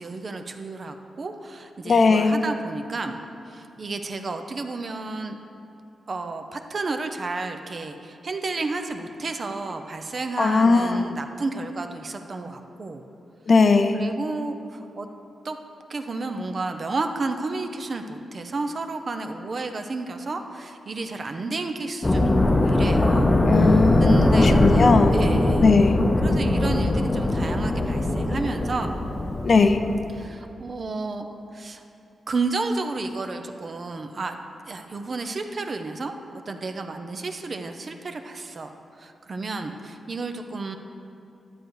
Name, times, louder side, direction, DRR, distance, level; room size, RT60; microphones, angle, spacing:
voice 1, 0.0-3.2 3.5-5.4 6.1-13.0 13.9-15.1 15.4-15.6 15.9-25.7 26.2-29.0 30.1-31.3 31.5-31.8 32.3-34.4 34.6-36.1 36.5-38.7 39.0-40.8, right 3 dB, 45° right, 6 dB, 0.7 m, -31 dB
voice 2, 1.9-2.4 10.4-11.0 13.5-14.0 23.5-25.2 25.6-26.0 29.4-29.8, left 4 dB, 50° left, 8 dB, 0.5 m, -18 dB
sound 1, 22.0-30.3, left 1 dB, 25° left, 0.8 m, -21 dB
12.0 x 7.8 x 4.8 m, 2.7 s
cardioid pair, 100°, 0 cm